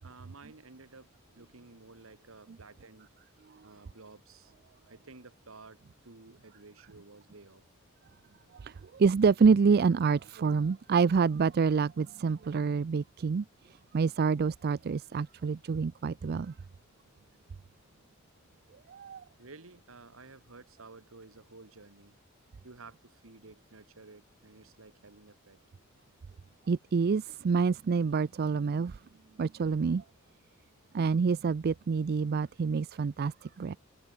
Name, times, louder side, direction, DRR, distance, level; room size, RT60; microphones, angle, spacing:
voice 1, 0.0-3.2 3.6-4.5 4.9-7.6 19.4-22.2 22.6-25.6, right 3 dB, 70° right, 1.6 m, -53 dB
voice 2, 8.6-16.5 18.9-19.2 26.7-29.0 29.4-30.0 30.9-33.8, right 5 dB, 50° right, 0.4 m, -27 dB
head